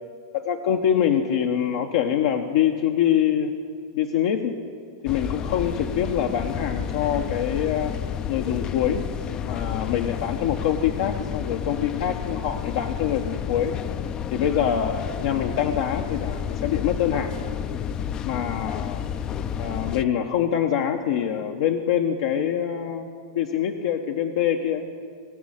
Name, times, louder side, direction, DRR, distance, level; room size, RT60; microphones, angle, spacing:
voice 1, 0.3-3.5 3.9-4.6 5.0-7.9 8.3-9.1 9.4-13.8 14.3-17.4 18.2-19.0 19.6-23.1 23.3-24.9, left 9 dB, 65° left, 3 dB, 0.8 m, -24 dB
sound 1, 5.1-20.1, left 8 dB, 30° left, 0.4 m, -31 dB
18.5 x 6.3 x 9.8 m, 2.2 s
hypercardioid pair, 130°, 3 cm